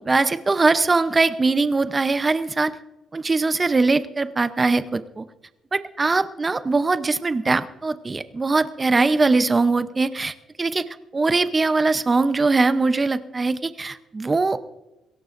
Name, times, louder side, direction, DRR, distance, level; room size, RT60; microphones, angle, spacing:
voice 1, 0.0-2.7 3.1-5.3 5.7-10.8 11.1-14.6, right 3 dB, 25° right, 12 dB, 0.7 m, -21 dB
22.5 x 17.0 x 2.6 m, 0.99 s
cardioid pair, 90°, 0 cm